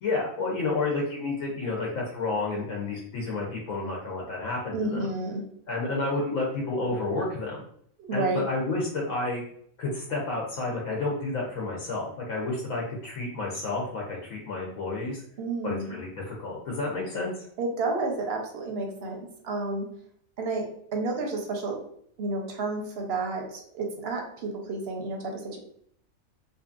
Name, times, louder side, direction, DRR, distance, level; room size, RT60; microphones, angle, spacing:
voice 1, 0.0-5.1 5.7-7.6 8.1-9.4 9.8-15.2 15.6-17.4, left 3 dB, 75° left, -3 dB, 1.0 m, -30 dB
voice 2, 4.7-5.4 8.0-8.5 15.4-16.0 17.6-19.9 20.4-21.8 22.2-25.6, right 3 dB, 60° right, 1 dB, 0.7 m, -31 dB
2.7 x 2.5 x 2.4 m, 0.64 s
omnidirectional pair, 1.4 m